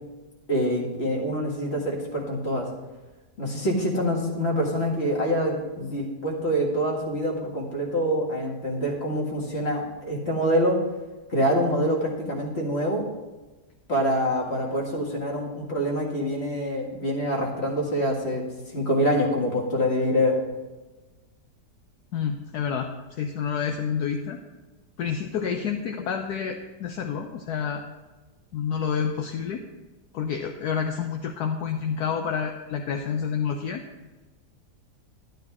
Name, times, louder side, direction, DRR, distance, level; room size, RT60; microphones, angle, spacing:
voice 1, 0.5-2.7 3.4-10.8 11.3-13.1 13.9-20.4, equal, 40° left, -1 dB, 2.3 m, -25 dB
voice 2, 22.1-24.4 25.0-27.8 28.5-29.6 30.1-33.8, left 7 dB, 70° left, 4 dB, 1.2 m, -29 dB
11.5 x 11.5 x 3.6 m, 1.2 s
omnidirectional pair, 1.8 m